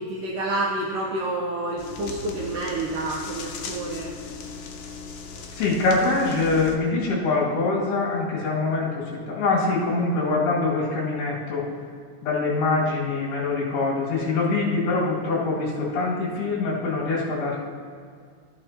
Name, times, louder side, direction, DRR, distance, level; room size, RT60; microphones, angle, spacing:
voice 1, 0.0-4.1, right 2 dB, 80° right, -3 dB, 2.0 m, -29 dB
sound 1, 1.8-6.8, left 5 dB, 90° left, 1.8 m, -38 dB
voice 2, 5.6-11.7 12.2-17.6, left 3 dB, 70° left, -6 dB, 4.2 m, -24 dB
14.0 x 8.6 x 2.9 m, 2.1 s
omnidirectional pair, 4.8 m